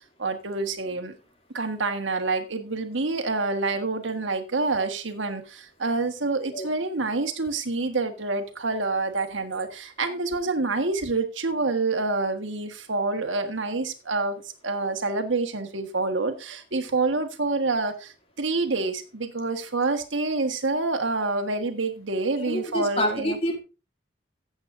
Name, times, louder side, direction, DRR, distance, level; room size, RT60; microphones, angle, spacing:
voice 1, 0.2-1.1 1.5-23.4, right 3 dB, 85° right, 1.5 m, -27 dB
voice 2, 22.4-23.6, equal, 30° left, 2.6 m, -27 dB
15.0 x 8.1 x 2.6 m
head